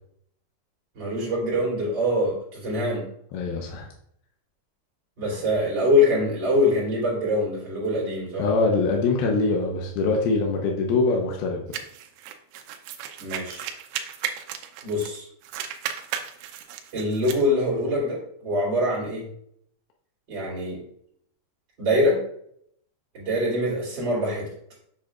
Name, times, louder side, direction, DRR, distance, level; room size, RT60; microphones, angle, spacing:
voice 1, 0.9-3.0 5.2-8.5 13.2-13.7 14.8-15.3 16.9-19.3 20.3-20.8 21.8-22.2 23.1-24.5, left 1 dB, 30° right, -5 dB, 2.8 m, -24 dB
voice 2, 3.3-3.9 5.3-5.4 8.4-11.6, left 3 dB, 80° left, 0 dB, 2.3 m, -23 dB
sound 1, 11.7-15.2 15.4-17.4, right 9 dB, 80° right, 2.8 m, -35 dB
7.5 x 7.3 x 2.4 m, 0.68 s
omnidirectional pair, 5.2 m